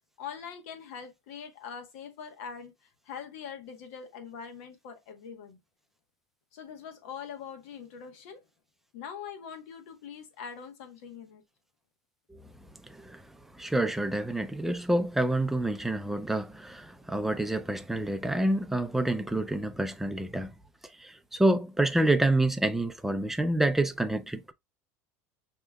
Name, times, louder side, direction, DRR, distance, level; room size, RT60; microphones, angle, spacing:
voice 1, 0.2-2.7 3.1-5.6 6.5-8.4 8.9-11.4, left 7 dB, 80° left, 1.1 m, -43 dB
voice 2, 12.9-13.2 13.6-20.5 21.0-24.5, right 1 dB, 5° right, 0.4 m, -28 dB
6.0 x 2.9 x 2.3 m
supercardioid pair, 125°, 7 cm